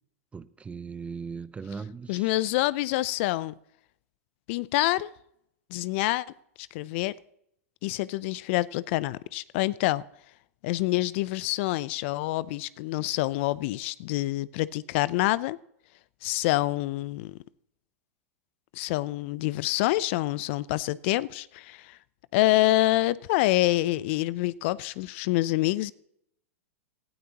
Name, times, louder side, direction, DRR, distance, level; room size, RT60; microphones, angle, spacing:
voice 1, 0.3-2.3, right 5 dB, 15° right, 0.6 m, -38 dB
voice 2, 2.1-3.5 4.5-5.1 5.7-6.3 6.6-7.1 7.8-10.0 10.6-15.6 16.2-17.4 18.7-22.0 22.3-25.9, left 18 dB, 55° left, 0.5 m, -26 dB
18.0 x 13.0 x 2.9 m
hypercardioid pair, 115°, 8 cm